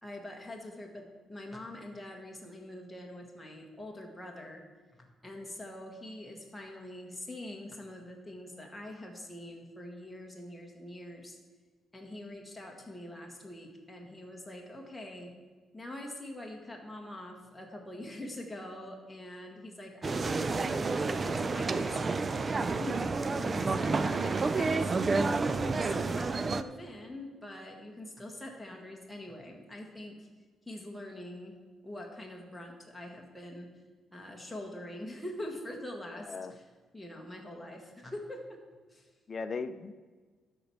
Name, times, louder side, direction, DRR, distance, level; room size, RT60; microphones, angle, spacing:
voice 1, 0.0-4.6 5.2-11.4 11.9-15.3 15.7-24.9 25.2-30.3 30.7-31.6 31.8-33.7 34.1-36.3 36.9-38.6 38.9-39.1, left 1 dB, 10° left, 0 dB, 1.6 m, -44 dB
sound 1, 20.0-26.6, right 3 dB, 35° right, 0.5 m, -30 dB
voice 2, 23.3-23.7 36.1-36.5 39.3-39.9, left 4 dB, 40° left, 12 dB, 0.6 m, -38 dB
12.0 x 4.5 x 7.0 m, 1.4 s
cardioid pair, 90°, 0 cm